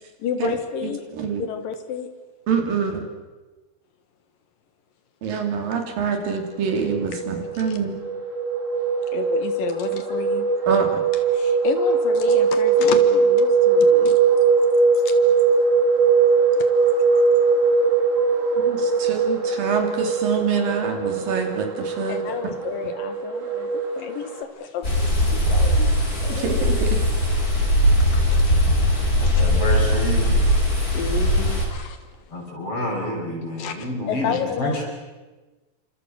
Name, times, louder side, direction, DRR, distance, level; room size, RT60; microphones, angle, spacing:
voice 1, 0.2-1.0 1.4-2.1 7.5-7.8 9.1-10.5 11.3-14.2 16.6-16.7 22.1-24.9 25.3-25.9 26.2-26.6 28.0-28.5 29.2-29.4 30.9-32.1 33.6-34.8, left 7 dB, 70° left, 8 dB, 3.0 m, -31 dB
voice 2, 0.8-1.5 2.5-3.0 5.2-8.0 10.7-11.0 18.6-22.2 26.3-27.0, right 6 dB, 70° right, 4 dB, 4.6 m, -25 dB
sound 1, 6.7-24.4, right 4 dB, 25° right, 2.2 m, -20 dB
sound 2, 24.8-31.7, equal, 25° left, 5.9 m, -20 dB
voice 3, 29.2-30.4 32.3-34.8, left 1 dB, 40° left, 0 dB, 7.3 m, -28 dB
29.0 x 26.0 x 6.4 m, 1.2 s
omnidirectional pair, 4.2 m